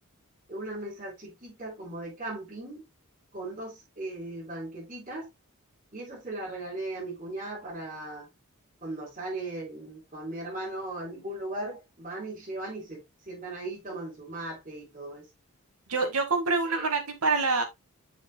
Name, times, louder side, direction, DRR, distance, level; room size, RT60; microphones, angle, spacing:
voice 1, 0.5-2.8 3.3-5.3 5.9-8.3 8.8-15.3 16.7-16.9, right 2 dB, 35° right, 4.3 m, -38 dB
voice 2, 15.9-17.6, right 4 dB, 85° right, 2.1 m, -26 dB
7.4 x 7.2 x 2.3 m
head